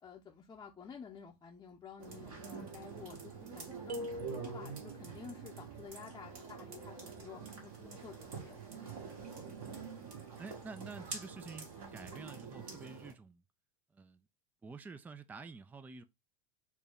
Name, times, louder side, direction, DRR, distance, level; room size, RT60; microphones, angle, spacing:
voice 1, 0.0-8.9, left 6 dB, 20° left, 0.7 m, -52 dB
sound 1, 2.0-13.1, right 5 dB, 60° right, 2.0 m, -46 dB
sound 2, 3.9-5.1, left 1 dB, 80° right, 0.5 m, -43 dB
voice 2, 10.4-13.4 13.9-14.2 14.6-16.0, right 4 dB, 10° right, 0.4 m, -49 dB
4.5 x 2.2 x 3.5 m
figure-of-eight pair, 85°, 20 cm